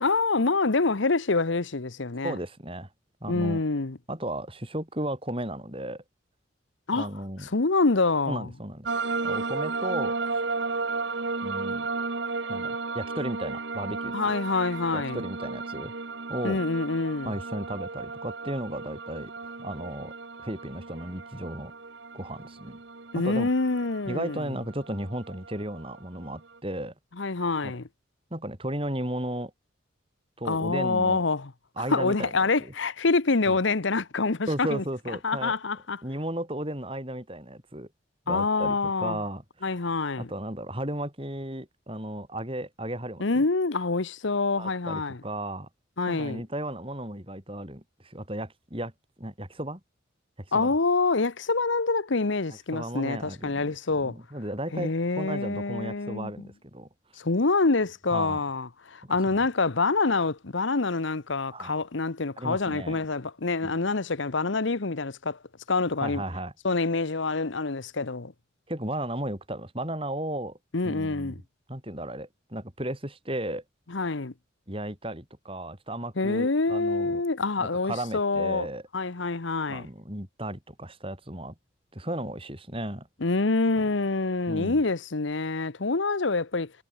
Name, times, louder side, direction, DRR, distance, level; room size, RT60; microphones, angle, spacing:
voice 1, 0.0-2.4 3.3-4.0 6.9-7.1 7.4-8.5 14.1-15.2 16.4-17.3 23.1-24.5 27.2-27.9 30.4-31.5 31.9-34.8 35.2-36.0 38.3-39.2 39.6-40.3 43.2-45.2 46.0-46.4 50.5-54.2 54.7-56.5 57.2-65.4 65.7-66.2 66.6-68.3 70.7-71.4 73.9-74.3 76.2-78.7 78.9-79.9 83.2-86.7, left 3 dB, 70° left, 1.0 m, -26 dB
voice 2, 2.2-2.9 3.2-3.6 4.1-6.0 6.9-7.5 8.3-8.9 9.2-10.4 11.4-11.9 12.5-14.3 14.9-15.9 16.3-16.6 17.2-20.1 20.4-21.7 22.1-22.8 23.1-23.5 24.1-26.9 27.6-27.7 28.3-29.5 30.4-31.2 31.8-32.3 32.6-32.7 33.5-33.6 34.5-35.5 36.0-37.9 38.3-39.7 40.2-43.4 44.6-45.7 46.1-48.9 49.2-49.8 50.5-50.7 52.7-53.6 54.0-56.9 58.1-58.4 59.3-59.4 61.5-61.7 62.4-63.0 63.6-63.7 66.0-66.5 68.7-70.6 70.8-71.4 71.7-73.6 74.7-77.2 77.6-78.8 79.7-81.5 81.9-83.1 84.5-84.8, right 1 dB, 25° right, 5.7 m, -35 dB
sound 1, 8.8-26.6, right 3 dB, 60° right, 1.2 m, -34 dB
head